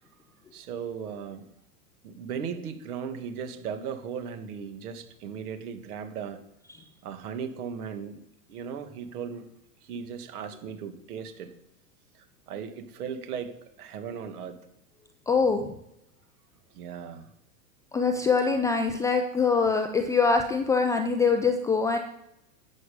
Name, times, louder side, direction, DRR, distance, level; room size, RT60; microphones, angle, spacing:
voice 1, 0.5-1.4 2.0-6.4 7.0-8.2 8.5-9.5 9.8-11.5 12.1-14.6 16.7-17.3, right 7 dB, 65° right, 7 dB, 2.2 m, -37 dB
voice 2, 15.3-15.7 17.9-22.0, left 4 dB, 10° left, 6 dB, 0.3 m, -24 dB
10.5 x 9.2 x 5.4 m, 0.81 s
hypercardioid pair, 105°, 48 cm